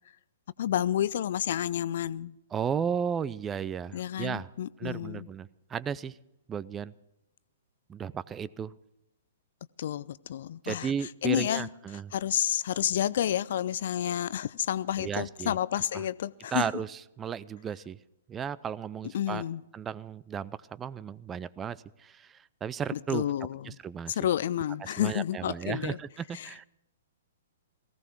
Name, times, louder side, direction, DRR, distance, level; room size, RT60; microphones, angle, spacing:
voice 1, 0.6-2.3 3.9-5.3 9.8-10.9 11.2-11.7 12.1-16.7 19.1-19.6 22.9-23.8 24.1-26.0 26.3-26.7, left 11 dB, 50° left, 0.5 m, -30 dB
voice 2, 2.5-4.5 4.8-6.2 6.5-6.9 7.9-8.7 10.6-12.1 15.0-15.6 15.9-16.0 16.5-18.0 18.3-19.4 19.7-23.2 23.6-24.2 24.8-26.7, right 7 dB, 15° right, 0.5 m, -34 dB
18.5 x 16.0 x 4.5 m
figure-of-eight pair, 115°, 0 cm